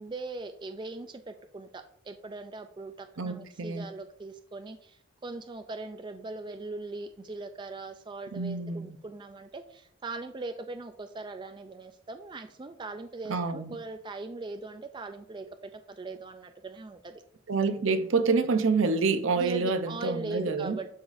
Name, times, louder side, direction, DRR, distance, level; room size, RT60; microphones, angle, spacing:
voice 1, 0.0-17.2 19.3-20.9, right 3 dB, 20° right, 0.3 m, -40 dB
voice 2, 3.2-3.9 8.3-9.0 13.3-13.8 17.5-20.8, right 4 dB, 65° right, 0.6 m, -27 dB
11.5 x 4.0 x 2.5 m
head